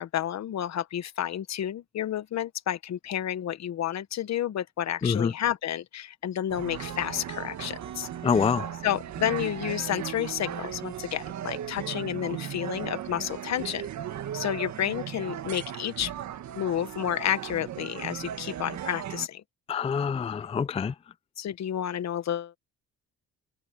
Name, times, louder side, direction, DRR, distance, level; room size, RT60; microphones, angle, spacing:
voice 1, 0.0-8.1 8.3-8.4 8.8-13.9 14.3-16.1 16.5-19.4 21.4-22.6, left 10 dB, 65° left, 1.2 m, -30 dB
voice 2, 5.0-5.3 8.2-8.7 19.7-20.9, left 6 dB, 20° left, 0.4 m, -26 dB
sound 1, 6.5-19.3, right 10 dB, 65° right, 1.7 m, -37 dB
cardioid pair, 90°, 30 cm